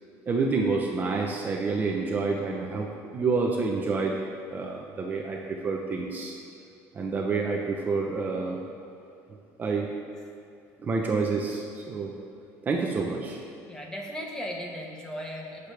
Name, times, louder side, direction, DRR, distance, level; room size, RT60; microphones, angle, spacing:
voice 1, 0.3-4.2 4.5-6.3 6.9-8.6 9.6-9.9 10.8-12.1 12.6-13.4, right 4 dB, 30° right, 0 dB, 0.9 m, -28 dB
voice 2, 13.6-15.7, equal, 10° left, 0 dB, 1.4 m, -37 dB
18.5 x 6.8 x 3.5 m, 2.6 s
cardioid pair, 145°, 6 cm